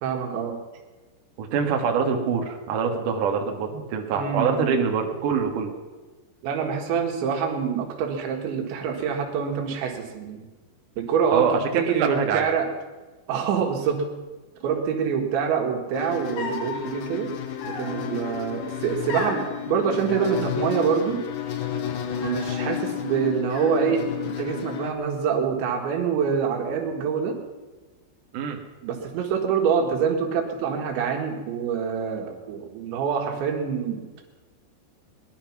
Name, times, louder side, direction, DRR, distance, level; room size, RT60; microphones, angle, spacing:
voice 1, 0.0-0.6 4.2-4.9 6.4-10.4 11.0-12.7 13.3-14.1 14.6-17.3 17.7-21.2 22.2-27.4 28.8-34.1, right 7 dB, 90° right, 3 dB, 4.1 m, -26 dB
voice 2, 1.4-5.7 11.3-11.6 12.0-12.5 28.3-28.6, right 6 dB, 60° right, 2 dB, 2.7 m, -24 dB
sound 1, 15.9-24.9, left 9 dB, 70° left, 2.5 m, -31 dB
sound 2, 16.4-16.8 17.6-18.3 19.1-19.5 20.1-20.9 21.2-21.8 22.2-22.8 23.5-24.4 24.7-25.4, left 3 dB, 90° left, 4.8 m, -37 dB
20.0 x 11.5 x 6.0 m, 1.2 s
omnidirectional pair, 5.1 m